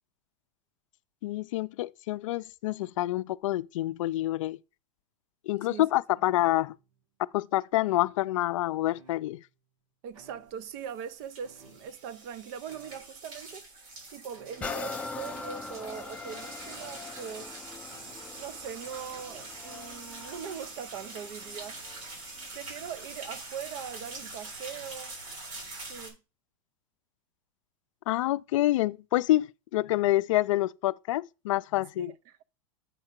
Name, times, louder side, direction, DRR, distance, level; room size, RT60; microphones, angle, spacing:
voice 1, 1.2-4.6 5.5-6.8 7.3-9.4 28.1-32.1, left 16 dB, 70° left, 0.4 m, -27 dB
sound 1, 6.3-7.0 7.8-8.6 8.9-9.6 10.1-10.9 11.4-12.3 12.7-13.2 14.3-14.9 16.6-17.4 17.9-18.4 19.1-19.7, right 4 dB, 65° right, 2.3 m, -58 dB
voice 2, 10.0-13.7 14.1-17.7 18.4-21.8 22.5-25.2 25.8-26.2 32.0-32.4, right 8 dB, 45° right, 0.6 m, -41 dB
sound 2, 10.4-26.1, right 2 dB, 85° right, 4.1 m, -44 dB
sound 3, 14.6-22.2 22.8-22.9, left 4 dB, 5° left, 0.6 m, -42 dB
8.0 x 4.9 x 4.4 m
supercardioid pair, 150°, 17 cm